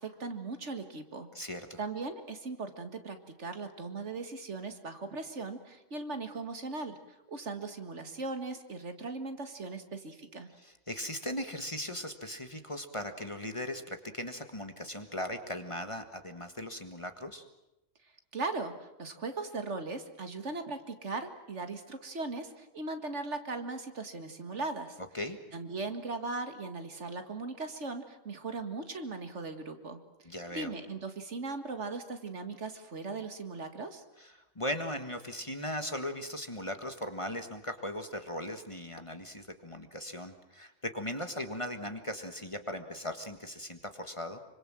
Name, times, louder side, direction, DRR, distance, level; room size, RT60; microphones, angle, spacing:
voice 1, 0.0-1.3 1.8-7.0 7.3-10.5 18.3-25.0 25.5-30.0 30.5-34.0, right 3 dB, 60° right, 8 dB, 2.2 m, -38 dB
voice 2, 1.3-1.8 10.6-17.4 25.1-25.4 30.2-30.7 34.2-44.4, left 1 dB, 25° left, 7 dB, 1.6 m, -38 dB
26.0 x 25.0 x 7.5 m, 0.94 s
omnidirectional pair, 1.4 m